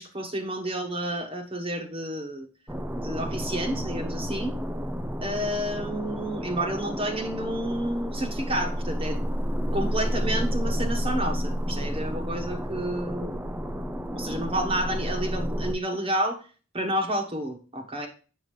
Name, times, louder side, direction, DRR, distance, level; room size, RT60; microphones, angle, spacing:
voice 1, 0.0-2.5 2.9-4.6 5.2-9.2 9.7-13.4 14.1-16.4 16.7-18.1, right 1 dB, 25° right, 4 dB, 1.2 m, -30 dB
sound 1, 2.7-15.7, equal, 10° right, 0.4 m, -30 dB
7.6 x 6.4 x 3.2 m, 0.36 s
head